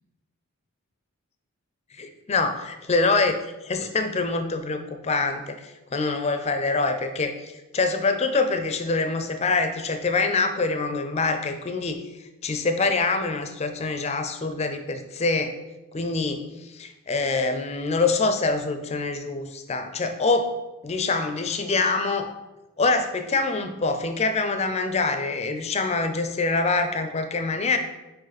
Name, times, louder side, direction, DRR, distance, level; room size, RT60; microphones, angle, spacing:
voice 1, 2.0-3.4 3.6-12.0 12.4-15.5 15.9-20.5 20.8-22.3 22.8-27.8, left 3 dB, 30° left, 8 dB, 0.4 m, -25 dB
5.1 x 4.6 x 4.0 m, 1.1 s
head